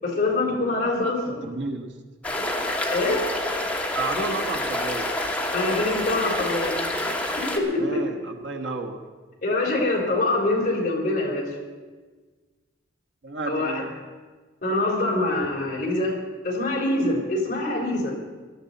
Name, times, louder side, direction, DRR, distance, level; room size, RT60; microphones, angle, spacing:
voice 1, 0.0-1.4 2.9-3.2 5.5-6.8 7.2-7.8 9.4-11.5 13.5-13.8 14.6-16.1 16.4-18.2, left 2 dB, 45° left, -2 dB, 3.7 m, -24 dB
voice 2, 1.0-1.9 3.9-5.2 7.7-9.0 13.2-14.0, right 3 dB, 80° right, 3 dB, 1.3 m, -32 dB
sound 1, 2.2-7.6, left 1 dB, 10° left, 1.3 m, -27 dB
18.5 x 12.5 x 4.1 m, 1.4 s
head